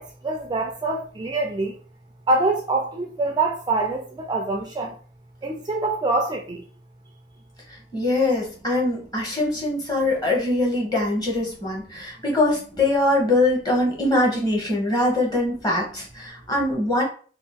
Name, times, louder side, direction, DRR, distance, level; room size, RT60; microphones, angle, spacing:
voice 1, 0.0-1.8 2.3-5.0 5.4-6.7, right 2 dB, 25° right, 0.4 m, -25 dB
voice 2, 7.7-17.0, left 2 dB, 20° left, 1.1 m, -23 dB
2.9 x 2.4 x 3.6 m
head